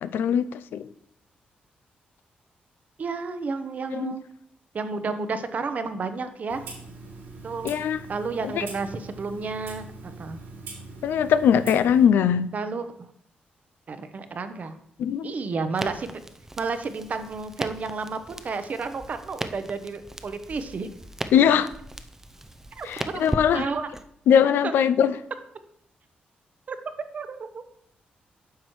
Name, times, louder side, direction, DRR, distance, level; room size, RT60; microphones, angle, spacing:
voice 1, 0.0-0.5 0.7-0.9 3.9-4.1 7.6-8.0 8.5-8.6 11.0-12.5 15.0-15.3 21.3-21.7 22.8-23.7 24.3-25.1, left 8 dB, 85° left, 14 dB, 0.4 m, -21 dB
voice 2, 3.0-4.2 4.7-6.6 7.4-7.7 8.1-10.4 12.5-12.9 13.9-14.7 15.2-16.1 16.6-20.9 22.8-23.3 23.5-23.9 26.7-26.8 27.1-27.6, right 4 dB, 50° right, 9 dB, 0.7 m, -31 dB
Clock, 6.5-12.1, right 3 dB, 85° right, 2.8 m, -42 dB
Crackle, 15.8-24.1, right 1 dB, 15° right, 0.5 m, -37 dB
9.3 x 6.1 x 3.1 m, 0.71 s
cardioid pair, 95°, 3 cm